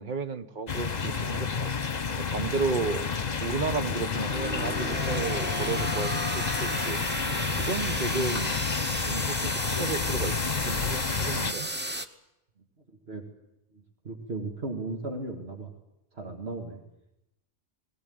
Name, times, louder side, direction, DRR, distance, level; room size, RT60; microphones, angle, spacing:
voice 1, 0.0-1.8 2.2-3.0 3.4-7.0 7.6-8.6 9.1-10.3 10.6-11.7, right 4 dB, 50° right, 10 dB, 1.3 m, -33 dB
sound 1, 0.7-11.5, left 5 dB, 40° left, 1.1 m, -30 dB
voice 2, 1.0-1.4 2.4-2.5 7.5-7.8 13.1-13.2 13.7-15.7 16.1-16.8, right 3 dB, 70° right, 2 dB, 2.4 m, -37 dB
sound 2, 3.2-12.1, right 1 dB, 10° right, 1.0 m, -34 dB
20.5 x 18.5 x 9.5 m, 0.86 s
omnidirectional pair, 1.1 m